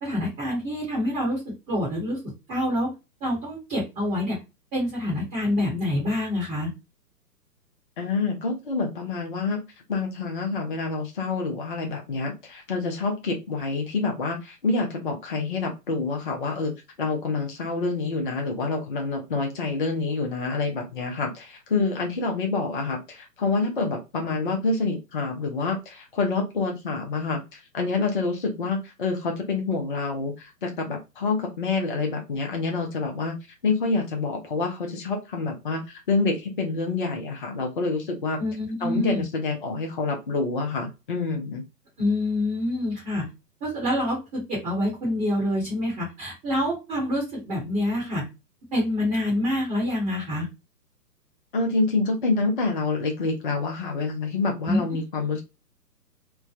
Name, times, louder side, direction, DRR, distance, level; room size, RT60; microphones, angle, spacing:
voice 1, 0.0-2.2 2.5-2.9 3.2-4.4 4.7-6.7 38.4-39.2 42.0-43.3 43.6-48.2 48.7-50.5 54.7-55.0, left 1 dB, 15° right, -5 dB, 0.9 m, -26 dB
voice 2, 8.0-9.6 9.9-16.7 17.0-33.4 33.6-38.4 38.8-41.6 51.5-55.4, left 3 dB, 35° left, 2 dB, 0.4 m, -27 dB
3.2 x 2.0 x 2.4 m, 0.25 s
figure-of-eight pair, 125°, 49 cm